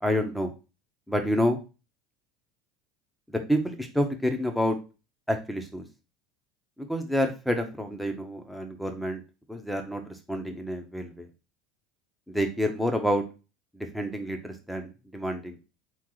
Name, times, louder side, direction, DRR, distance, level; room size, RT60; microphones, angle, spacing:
voice 1, 0.0-0.5 1.1-1.6 3.3-4.8 5.3-5.8 6.9-9.2 9.5-11.3 12.3-13.2 13.7-15.6, equal, ahead, 5 dB, 1.1 m, -28 dB
3.8 x 3.2 x 3.9 m, 0.30 s
hypercardioid pair, 80°, 0 cm